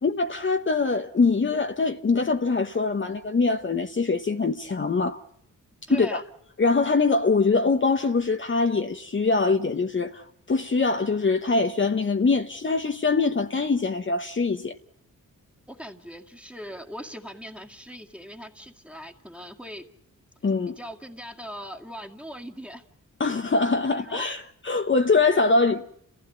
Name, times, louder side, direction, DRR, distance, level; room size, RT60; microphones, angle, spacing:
voice 1, 0.0-5.2 5.9-6.2 6.6-14.7 20.4-20.7 23.2-25.9, left 4 dB, 35° left, 1.1 m, -23 dB
voice 2, 5.9-6.2 15.7-19.9 20.8-22.8 23.2-23.3 23.9-24.3, equal, 5° right, 2.1 m, -40 dB
29.5 x 15.5 x 8.6 m
cardioid pair, 90°, 33 cm